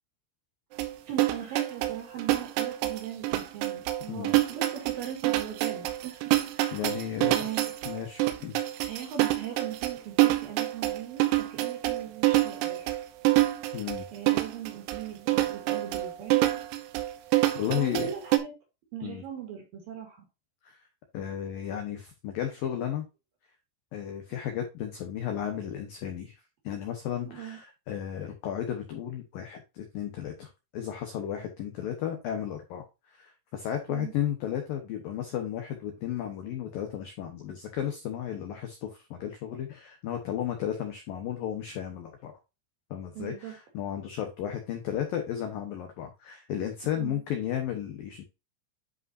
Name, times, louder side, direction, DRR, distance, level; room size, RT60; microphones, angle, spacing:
sound 1, 0.8-18.4, right 16 dB, 85° right, 3.7 m, -27 dB
voice 1, 1.1-6.2 6.5-7.7 8.8-12.9 14.1-16.5 17.6-18.5 18.9-20.2 27.3-27.6 33.9-34.1 43.1-43.6 47.0-47.2, right 9 dB, 55° right, 2 dB, 3.1 m, -39 dB
voice 2, 6.7-7.5 7.9-8.6 13.7-14.0 17.5-18.1 19.0-19.2 20.6-20.8 21.1-23.1 23.9-26.3 26.6-42.3 42.9-48.2, left 10 dB, 90° left, 5 dB, 1.9 m, -34 dB
10.5 x 5.3 x 2.7 m, 0.26 s
omnidirectional pair, 5.9 m